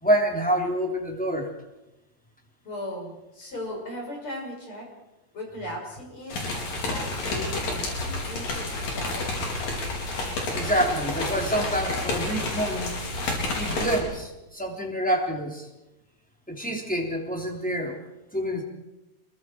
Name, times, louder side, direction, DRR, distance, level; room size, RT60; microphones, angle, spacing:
voice 1, 0.0-1.5 10.5-13.0 13.5-15.7 16.5-18.0 18.3-18.6, right 1 dB, ahead, 0 dB, 3.1 m, -27 dB
voice 2, 2.6-4.9 5.3-9.5, left 1 dB, 35° left, 0 dB, 6.5 m, -38 dB
sound 1, 6.3-14.0, left 2 dB, 65° left, 5.6 m, -30 dB
28.0 x 22.5 x 4.7 m, 0.98 s
omnidirectional pair, 4.2 m